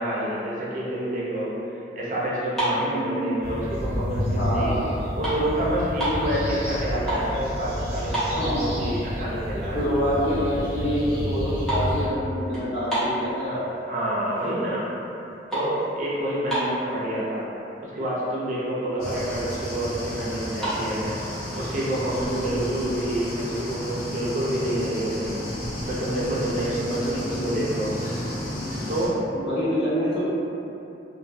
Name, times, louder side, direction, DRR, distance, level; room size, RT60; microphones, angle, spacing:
voice 1, 0.0-1.5 2.0-4.8 5.2-9.8 13.4-14.9 15.5-17.5 17.8-21.2 21.5-25.4 25.9-28.0 28.9-29.2, right 1 dB, 45° right, -7 dB, 0.5 m, -28 dB
sound 1, 2.4-3.8 4.3-4.5 4.8-6.3 6.8-7.4 7.7-7.8 8.1-9.0 9.4-9.5 10.0-10.1 10.4-10.7 11.0-13.8 14.3-14.7 15.0-17.0 17.7-17.8 18.0-18.2 18.6-18.7 18.9-19.6 20.4-20.8, right 1 dB, 5° left, 0.7 m, -30 dB
voice 2, 2.7-3.1 4.3-4.9 8.4-8.7 9.7-13.6 16.3-16.7 22.3-22.9 27.0-27.5 29.3-30.2, equal, 80° left, -13 dB, 1.1 m, -27 dB
sound 2, 3.4-12.1, equal, 10° right, 1.0 m, -30 dB
sound 3, 19.0-29.1, equal, 55° left, 0.5 m, -32 dB
2.3 x 2.2 x 2.5 m, 2.8 s
head